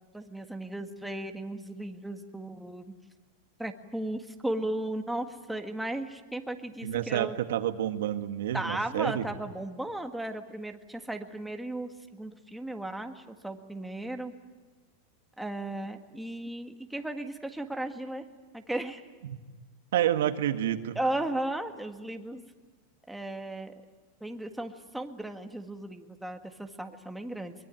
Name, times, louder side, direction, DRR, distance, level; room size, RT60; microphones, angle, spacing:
voice 1, 0.1-2.9 3.6-7.4 8.5-14.3 15.4-18.2 18.5-19.0 21.0-22.4 23.1-23.8 24.2-27.5, right 1 dB, 5° right, 5 dB, 1.7 m, -35 dB
voice 2, 6.8-9.2 19.2-19.4 19.9-21.0, right 11 dB, 80° right, 8 dB, 1.9 m, -29 dB
23.5 x 21.5 x 9.1 m, 1.3 s
supercardioid pair, 135°, 0 cm